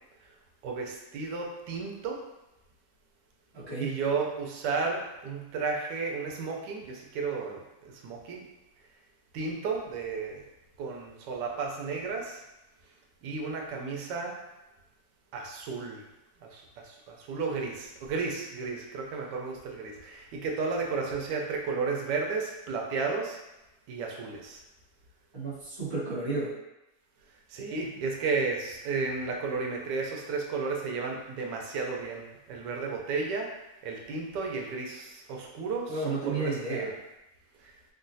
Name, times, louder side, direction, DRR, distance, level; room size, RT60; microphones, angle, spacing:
voice 1, 0.6-2.2 3.8-7.6 8.0-8.4 9.3-10.4 10.8-12.4 13.2-14.4 15.3-16.0 16.5-23.4 23.9-24.6 27.5-33.5 33.8-36.9, right 4 dB, 85° right, 0 dB, 1.2 m, -33 dB
voice 2, 3.5-3.9 25.3-26.6 35.9-36.9, right 3 dB, 20° right, -10 dB, 0.8 m, -32 dB
3.9 x 2.1 x 2.6 m, 0.96 s
omnidirectional pair, 1.8 m